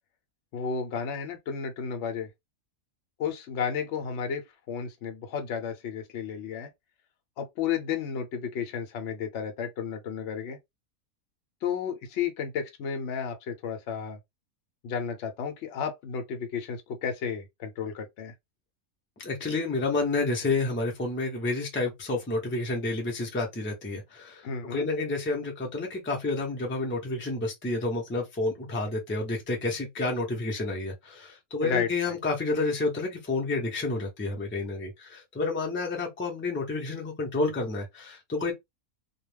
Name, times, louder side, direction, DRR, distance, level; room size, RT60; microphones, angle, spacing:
voice 1, 0.5-2.3 3.2-6.7 7.4-10.6 11.6-14.2 14.8-18.3 24.4-24.8 31.6-32.2, left 7 dB, 65° left, 0.8 m, -32 dB
voice 2, 19.2-24.4 24.7-38.5, left 3 dB, 15° left, 0.4 m, -30 dB
2.3 x 2.2 x 3.2 m
omnidirectional pair, 1.5 m